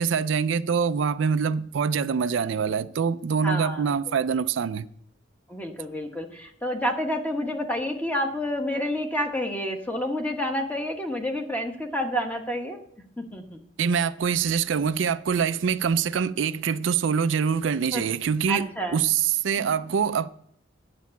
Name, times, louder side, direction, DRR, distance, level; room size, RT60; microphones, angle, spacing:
voice 1, 0.0-4.9 13.8-20.3, right 6 dB, 75° right, 0.4 m, -24 dB
voice 2, 3.4-3.9 5.5-12.8 13.2-13.6 17.9-18.0 18.5-19.0, equal, 10° left, 1.2 m, -29 dB
9.4 x 6.7 x 7.1 m
head